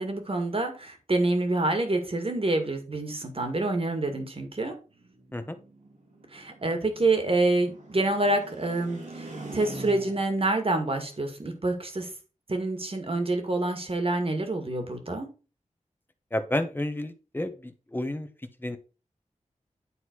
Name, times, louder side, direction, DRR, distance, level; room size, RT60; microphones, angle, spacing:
voice 1, 0.0-4.8 6.3-12.1 12.5-15.3, right 2 dB, 45° right, 5 dB, 2.3 m, -27 dB
sound 1, 5.0-10.5, right 2 dB, 80° right, 3.0 m, -42 dB
voice 2, 16.3-18.3 18.6-18.8, left 1 dB, 15° left, 8 dB, 1.3 m, -31 dB
10.0 x 4.0 x 4.7 m, 0.33 s
cardioid pair, 55°, 13 cm